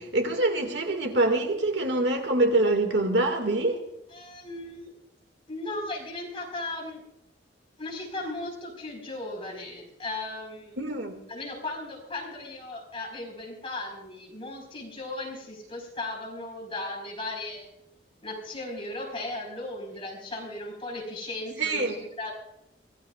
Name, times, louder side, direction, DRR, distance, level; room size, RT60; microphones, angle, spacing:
voice 1, 0.0-3.8 10.8-11.2 21.6-22.0, right 2 dB, 70° right, 2.1 m, -25 dB
voice 2, 4.1-4.9 5.5-7.0 7.8-10.8 11.3-17.7 18.2-22.3, left 2 dB, 30° left, 4.6 m, -36 dB
24.5 x 16.0 x 2.4 m
head